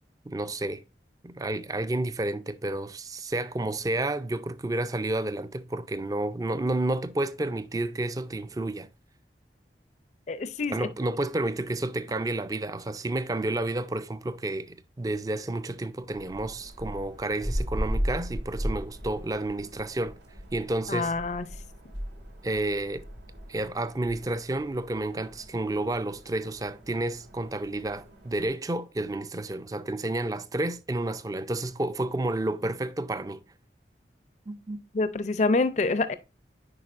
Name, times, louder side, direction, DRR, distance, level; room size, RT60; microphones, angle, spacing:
voice 1, 0.3-0.8 1.2-8.9 10.7-20.2 20.5-21.1 22.4-23.1 23.5-33.4 34.5-34.9, right 2 dB, 20° right, 0.4 m, -30 dB
voice 2, 10.3-10.9 20.9-21.4 34.9-36.1, left 3 dB, 40° left, 0.4 m, -26 dB
sound 1, 16.1-28.5, equal, 90° right, 2.0 m, -37 dB
9.6 x 4.6 x 2.5 m
head